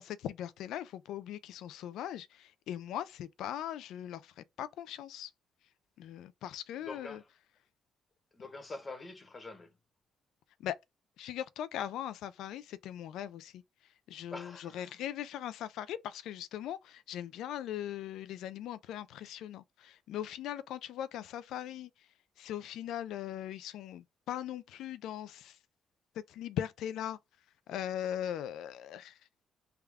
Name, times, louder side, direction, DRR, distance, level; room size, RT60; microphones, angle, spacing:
voice 1, 0.0-4.3 4.6-5.3 6.0-7.2 10.6-10.8 11.2-13.6 14.1-21.9 22.4-25.6 26.3-27.2 27.7-29.1, left 11 dB, 85° left, 0.3 m, -40 dB
voice 2, 6.8-7.2 8.3-9.7 14.3-15.0, left 3 dB, 30° left, 0.9 m, -45 dB
3.5 x 2.2 x 3.4 m
cardioid pair, 90°, 0 cm